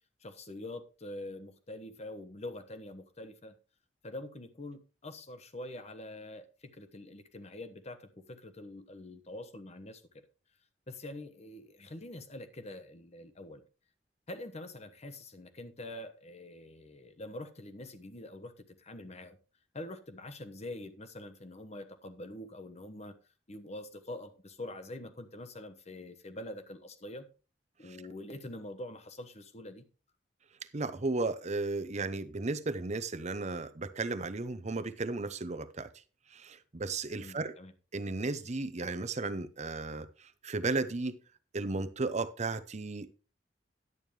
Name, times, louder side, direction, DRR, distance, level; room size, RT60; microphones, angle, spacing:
voice 1, 0.2-3.6 4.0-6.5 6.7-10.0 10.9-13.6 14.3-19.4 19.7-23.2 23.5-27.2 27.8-29.8 37.2-37.7, left 1 dB, 40° left, 1.1 m, -45 dB
voice 2, 30.7-35.9 36.3-37.5 37.9-41.2 41.5-43.1, right 3 dB, 40° right, 0.8 m, -34 dB
11.0 x 9.0 x 3.3 m
head